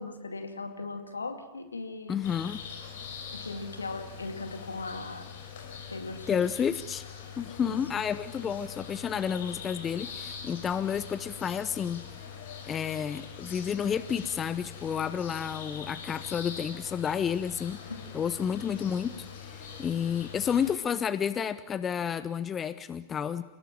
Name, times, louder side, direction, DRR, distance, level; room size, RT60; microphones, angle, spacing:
voice 1, 0.0-2.2 3.3-5.3 5.9-6.4 7.6-7.8, left 3 dB, 75° left, 6 dB, 2.4 m, -38 dB
voice 2, 2.1-2.6 6.3-7.0 7.4-12.0 12.6-17.8 18.1-23.4, left 7 dB, 25° left, 14 dB, 0.8 m, -31 dB
sound 1, 2.2-20.7, left 6 dB, 55° left, 5.9 m, -43 dB
30.0 x 17.5 x 7.4 m, 1.2 s
figure-of-eight pair, 90°, 0 cm